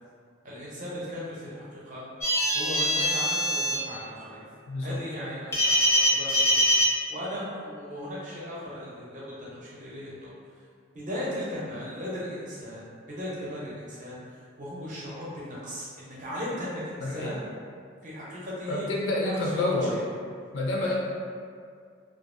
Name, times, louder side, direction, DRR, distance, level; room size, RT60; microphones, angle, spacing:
voice 1, 0.4-2.0 2.5-4.4 4.8-6.6 7.1-10.3 10.9-14.2 14.6-17.4 18.0-18.9 19.3-20.0 20.8-21.0, equal, 40° right, -7 dB, 0.6 m, -37 dB
sound 1, 2.2-3.7 5.5-6.9, equal, 15° left, 0.4 m, -23 dB
voice 2, 4.7-5.0 17.0-17.4 18.7-19.9 20.5-20.9, left 2 dB, 75° left, -3 dB, 0.4 m, -28 dB
2.5 x 2.1 x 2.5 m, 2.2 s
head